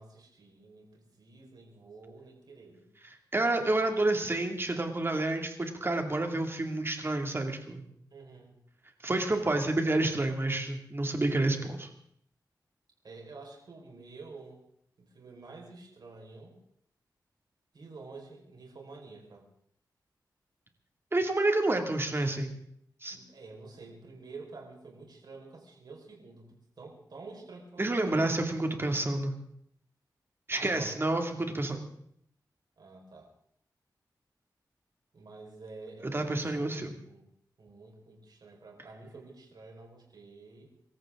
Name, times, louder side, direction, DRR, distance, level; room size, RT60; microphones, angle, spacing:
voice 1, 0.0-2.8 8.1-8.5 13.0-14.6 15.0-16.6 17.7-19.4 23.1-28.2 30.5-31.0 32.8-33.3 35.1-36.8 37.1-37.3 37.6-40.7, right 3 dB, 65° right, 0 dB, 4.9 m, -49 dB
voice 2, 3.3-7.8 9.0-11.9 21.1-22.5 23.0-23.2 27.8-29.3 30.5-31.8 36.1-37.0, right 2 dB, 30° right, 4 dB, 2.5 m, -29 dB
25.5 x 14.0 x 3.8 m, 0.69 s
wide cardioid pair, 95°, 8 cm